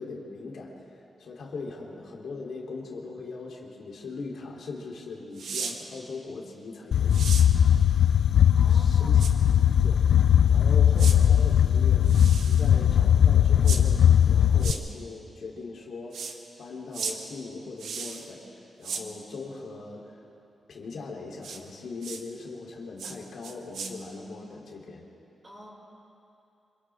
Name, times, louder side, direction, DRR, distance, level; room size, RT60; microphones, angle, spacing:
voice 1, 0.0-7.5 8.4-9.2 9.8-18.5 18.8-20.3 20.7-25.1, left 3 dB, 70° left, -2 dB, 3.5 m, -40 dB
sound 1, 5.4-5.7 7.1-7.5 9.2-9.3 11.0-11.2 12.0-12.7 13.6-13.8 14.6-14.8 16.1-16.3 16.9-17.1 17.8-18.3 18.8-19.0 21.4-21.6 22.0-22.2 23.0-23.2 23.4-23.9, right 5 dB, 90° right, 1.6 m, -35 dB
sound 2, 6.9-14.7, left 9 dB, 85° left, 0.5 m, -19 dB
voice 2, 8.5-9.3 25.4-25.7, equal, 20° right, -4 dB, 6.2 m, -45 dB
27.5 x 27.0 x 3.7 m, 2.8 s
wide cardioid pair, 145°, 0 cm